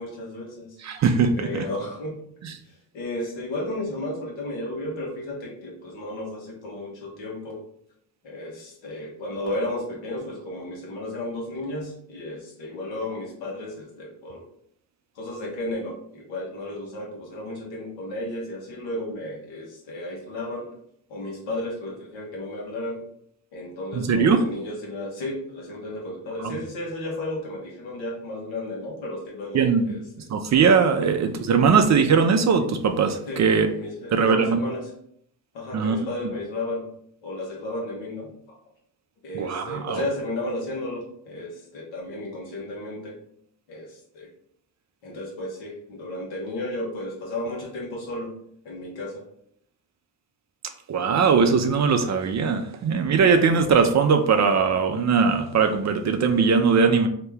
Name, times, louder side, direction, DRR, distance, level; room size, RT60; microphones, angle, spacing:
voice 1, 0.0-0.8 1.4-2.2 2.9-7.6 8.2-14.4 15.1-20.7 21.1-23.0 23.5-30.0 31.0-31.1 33.3-33.4 33.7-34.9 35.5-36.9 37.2-38.3 39.2-43.1 43.7-44.3 45.0-48.4 48.6-49.2, left 1 dB, 80° left, -2 dB, 1.1 m, -33 dB
voice 2, 0.8-1.7 2.4-2.5 23.9-24.4 26.4-26.6 29.5-29.9 30.3-33.7 34.1-34.6 35.7-36.0 39.3-40.0 50.9-57.1, right 5 dB, 40° right, 6 dB, 0.5 m, -20 dB
2.8 x 2.1 x 3.3 m, 0.67 s
hypercardioid pair, 55°, 44 cm